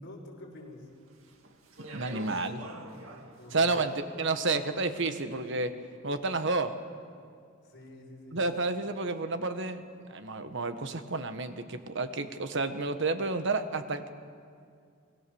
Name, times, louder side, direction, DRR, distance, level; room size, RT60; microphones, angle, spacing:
voice 1, 0.0-0.9 3.4-3.8 7.6-8.4, left 2 dB, 55° left, -1 dB, 5.9 m, -48 dB
Speech, 1.1-5.4, right 2 dB, 85° right, 2.3 m, -48 dB
voice 2, 1.9-2.6 3.5-3.9 4.2-5.7 6.0-6.7 8.3-9.8 10.1-14.1, right 3 dB, 65° right, 9 dB, 1.4 m, -30 dB
28.0 x 21.5 x 7.1 m, 2.3 s
head